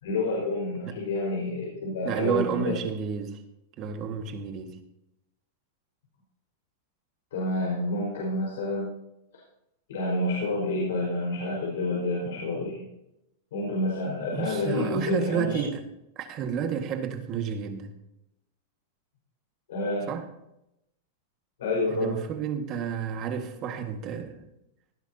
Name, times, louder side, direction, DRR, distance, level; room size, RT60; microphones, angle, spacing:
voice 1, 0.0-2.7 7.3-8.9 9.9-12.8 13.5-15.6 19.7-20.1 21.6-22.2, left 2 dB, 80° left, -4 dB, 4.8 m, -29 dB
voice 2, 2.0-3.4 3.8-4.8 14.3-15.8 16.2-17.9 20.1-20.3 21.9-24.5, right 7 dB, 35° right, 6 dB, 1.8 m, -31 dB
18.0 x 10.5 x 2.9 m, 0.85 s
supercardioid pair, 145°, 0 cm